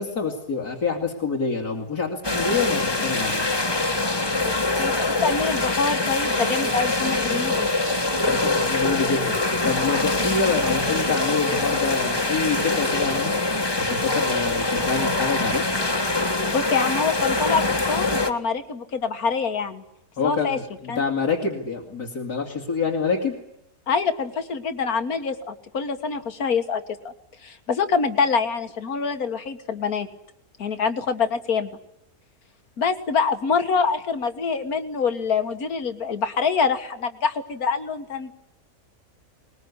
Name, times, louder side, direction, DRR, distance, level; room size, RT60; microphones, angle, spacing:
voice 1, 0.0-3.4 8.2-13.3 13.8-15.6 20.2-23.3, left 5 dB, 90° left, -2 dB, 3.1 m, -27 dB
sound 1, 2.2-18.3, left 2 dB, 15° left, 1.3 m, -24 dB
voice 2, 4.4-7.7 16.5-19.8 20.2-20.6 20.9-21.0 23.9-27.1 27.4-30.1 30.6-31.7 32.8-38.3, left 5 dB, 70° left, 8 dB, 2.1 m, -25 dB
22.0 x 21.0 x 9.6 m, 0.80 s
omnidirectional pair, 1.6 m